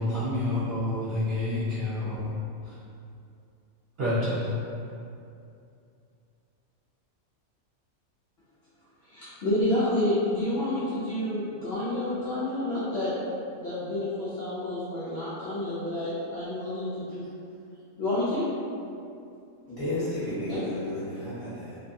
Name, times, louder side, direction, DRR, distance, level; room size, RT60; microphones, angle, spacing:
voice 1, 0.0-2.3 2.7-2.8 4.0-4.6, left 1 dB, 65° right, -11 dB, 0.6 m, -28 dB
voice 2, 9.0-13.1 13.5-17.2 18.0-18.5 20.5-20.6, left 1 dB, 65° left, -10 dB, 0.7 m, -29 dB
voice 3, 19.7-21.8, left 1 dB, 20° left, -13 dB, 0.9 m, -32 dB
2.5 x 2.2 x 2.5 m, 2.5 s
omnidirectional pair, 1.4 m